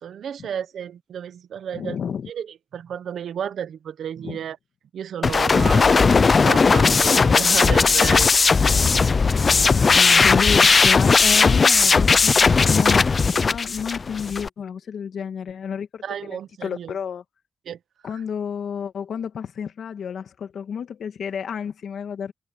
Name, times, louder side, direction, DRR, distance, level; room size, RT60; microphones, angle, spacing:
voice 1, 0.0-2.0 2.3-4.6 4.9-8.3 16.0-17.0 17.6-17.8 18.1-18.2, right 8 dB, 85° right, 1.1 m, -32 dB
voice 2, 1.7-2.3 4.2-4.4 9.9-17.2 18.0-22.3, left 7 dB, 80° left, 2.3 m, -31 dB
sound 1, 5.2-14.5, left 4 dB, 55° left, 0.8 m, -17 dB
supercardioid pair, 45°, 0 cm